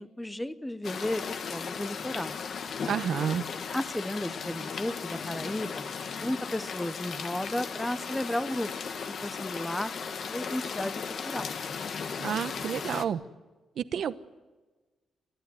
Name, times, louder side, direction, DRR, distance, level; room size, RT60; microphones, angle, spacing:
voice 1, 0.0-2.4 3.7-8.7 9.2-9.9 10.3-11.5, left 1 dB, 5° left, 13 dB, 0.8 m, -34 dB
sound 1, 0.8-13.0, left 6 dB, 50° left, 1.3 m, -36 dB
voice 2, 2.8-3.4 12.2-13.2 13.8-14.2, right 8 dB, 65° right, 12 dB, 1.0 m, -30 dB
29.5 x 14.5 x 9.6 m, 1.2 s
wide cardioid pair, 165°, 0 cm